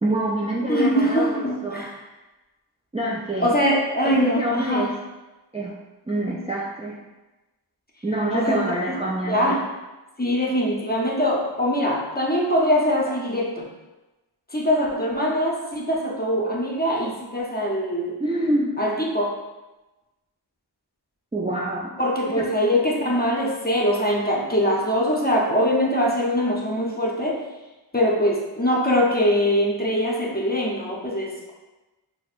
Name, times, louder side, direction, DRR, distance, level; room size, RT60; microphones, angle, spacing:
voice 1, 0.0-1.9 2.9-3.6 4.0-4.9 5.5-5.7 6.1-7.0 8.0-9.6 18.2-18.8 21.3-21.9 22.3-22.5, right 1 dB, 15° right, -4 dB, 0.4 m, -26 dB
voice 2, 0.7-1.9 3.4-4.9 8.3-8.6 9.3-9.7 10.2-13.6 14.5-18.2 18.8-19.3 22.0-27.4 27.9-31.5, equal, 20° left, -2 dB, 0.7 m, -22 dB
6.0 x 2.1 x 2.4 m, 1.1 s
wide cardioid pair, 55°, 43 cm